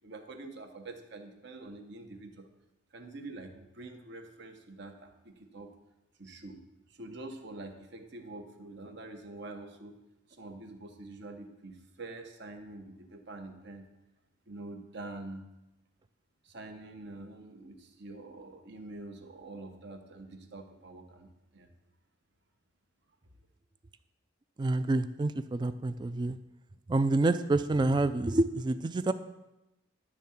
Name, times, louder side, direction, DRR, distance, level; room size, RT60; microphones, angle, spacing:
voice 1, 0.0-2.5 2.9-5.7 6.2-6.6 6.9-10.0 10.3-13.9 14.5-15.5 16.4-21.7, right 2 dB, 55° right, 5 dB, 1.0 m, -46 dB
voice 2, 24.6-26.4 26.9-29.1, right 2 dB, 20° right, 12 dB, 0.3 m, -28 dB
11.0 x 3.7 x 7.1 m, 0.95 s
head